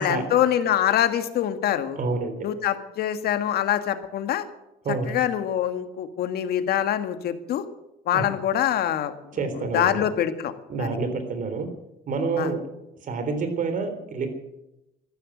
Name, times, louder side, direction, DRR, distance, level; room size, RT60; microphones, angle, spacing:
voice 1, 0.0-2.0 2.4-4.4 5.1-7.6 8.1-10.5 10.8-10.9 12.4-12.5, left 10 dB, 65° left, 9 dB, 1.8 m, -25 dB
voice 2, 2.0-2.4 4.8-5.2 8.1-8.3 9.3-10.0 10.7-11.7 12.1-12.6 13.0-14.3, right 4 dB, 50° right, 8 dB, 3.7 m, -28 dB
14.5 x 12.5 x 7.9 m, 0.90 s
cardioid pair, 110°, 17 cm